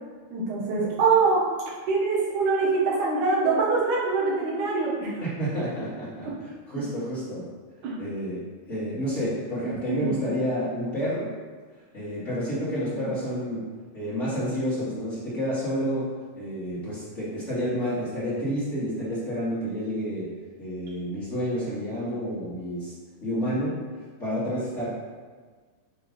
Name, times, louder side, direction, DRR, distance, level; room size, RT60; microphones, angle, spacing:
voice 1, 0.3-1.5 1.9-5.1 7.8-8.0 9.9-10.2 12.9-13.1, right 4 dB, 60° right, -5 dB, 2.6 m, -24 dB
voice 2, 5.2-7.5 8.0-8.4 8.7-11.3 11.9-13.7 13.9-16.1 16.3-20.3 20.6-22.9 23.2-23.8 24.2-25.0, equal, 60° left, -11 dB, 0.7 m, -29 dB
8.0 x 4.0 x 5.2 m, 1.5 s
omnidirectional pair, 4.6 m